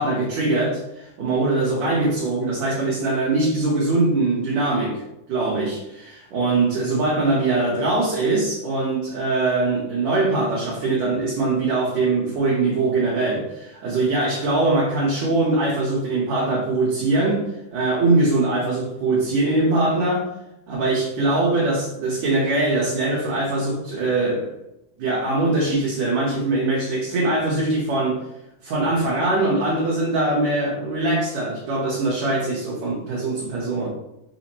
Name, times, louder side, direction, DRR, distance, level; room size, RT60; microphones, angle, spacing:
voice 1, 0.0-5.0 5.3-17.5 17.7-20.3 20.7-24.5 25.0-28.2 28.6-33.9, right 2 dB, 70° right, -5 dB, 2.0 m, -22 dB
5.0 x 2.1 x 4.2 m, 0.87 s
omnidirectional pair, 3.6 m